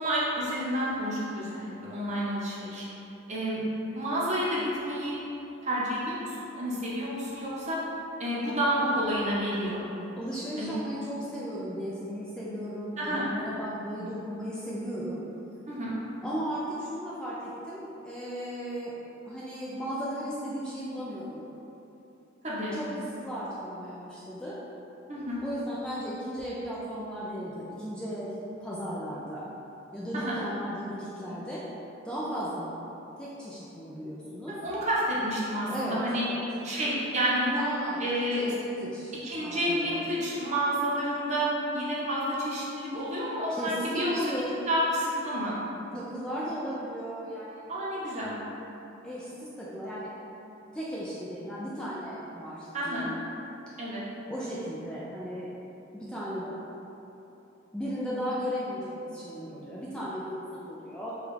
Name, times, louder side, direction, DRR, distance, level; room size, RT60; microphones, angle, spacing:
voice 1, 0.0-2.9 3.3-3.6 3.9-5.2 5.6-7.8 8.2-9.8 10.6-10.7 13.0-13.3 15.7-15.9 22.4-22.8 25.1-25.4 30.1-30.4 34.5-36.3 36.6-37.6 38.0-38.5 39.2-44.1 44.7-45.5 47.7-48.3 52.7-53.1 53.8-54.0, equal, 35° right, -7 dB, 0.8 m, -29 dB
voice 2, 10.2-15.2 16.2-18.9 19.2-21.4 22.8-24.6 25.4-29.4 29.9-31.7 32.0-32.8 33.2-34.6 35.7-36.4 37.6-39.1 39.4-40.0 43.5-44.5 45.9-47.6 49.0-50.1 50.7-53.2 54.3-55.5 55.9-56.6 57.7-61.2, equal, 5° left, -8 dB, 0.4 m, -36 dB
5.0 x 2.3 x 3.2 m, 3.0 s
head